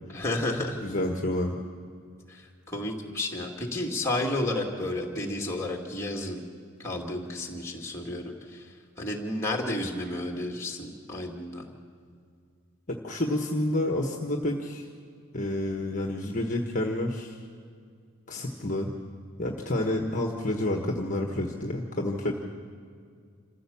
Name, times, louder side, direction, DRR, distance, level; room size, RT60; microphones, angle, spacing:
voice 1, 0.1-0.8 2.3-2.4 2.7-6.4 6.8-8.7 9.0-11.7, left 1 dB, 10° left, -1 dB, 2.4 m, -31 dB
voice 2, 0.8-1.6 12.9-14.9 15.3-17.4 18.3-18.9 19.4-22.3, left 1 dB, 35° left, 1 dB, 1.4 m, -29 dB
27.0 x 15.5 x 7.2 m, 2.2 s
head